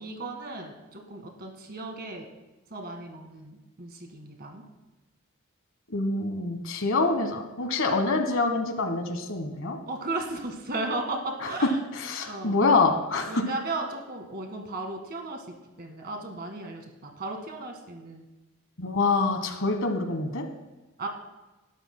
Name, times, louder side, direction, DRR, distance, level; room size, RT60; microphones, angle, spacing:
voice 1, 0.0-2.3 2.7-4.7 9.9-11.8 12.3-12.6 13.3-15.4 15.8-18.2 21.0-21.1, right 2 dB, 45° right, 2 dB, 1.8 m, -35 dB
voice 2, 5.9-9.8 11.4-11.5 11.9-13.4 18.8-20.4, left 3 dB, 65° left, 6 dB, 1.3 m, -26 dB
20.5 x 11.5 x 2.2 m, 1.1 s
head